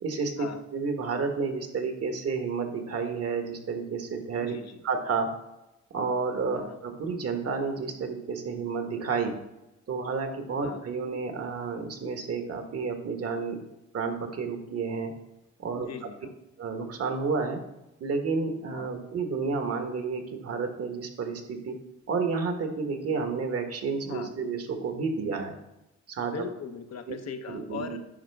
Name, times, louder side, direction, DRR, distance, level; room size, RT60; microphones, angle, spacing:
voice 1, 0.0-4.5 4.8-5.3 5.9-9.3 9.9-13.6 13.9-15.1 15.6-15.9 16.6-17.6 18.0-21.7 22.1-25.5 26.1-26.3 27.1-27.2 27.5-28.0, right 4 dB, 50° right, 6 dB, 1.3 m, -30 dB
voice 2, 4.4-4.8 6.6-6.8 10.6-10.8 15.7-16.3 18.7-18.9 24.1-24.3 26.2-28.0, left 6 dB, 60° left, 7 dB, 0.9 m, -39 dB
10.0 x 5.1 x 3.4 m, 0.93 s
cardioid pair, 90°, 30 cm